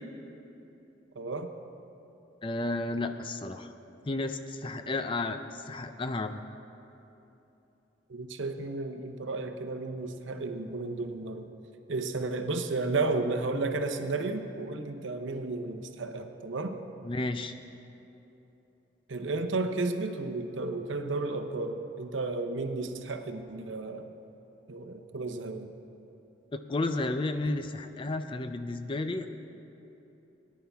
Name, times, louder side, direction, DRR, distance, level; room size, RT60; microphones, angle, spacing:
voice 1, 1.1-1.5 8.1-11.4 11.9-16.8 19.1-24.1 24.7-25.7, right 3 dB, 80° right, 6 dB, 0.8 m, -33 dB
voice 2, 2.4-3.7 4.0-6.4 17.0-17.6 26.5-29.3, left 2 dB, 25° left, 8 dB, 0.4 m, -32 dB
18.0 x 10.5 x 3.5 m, 3.0 s
head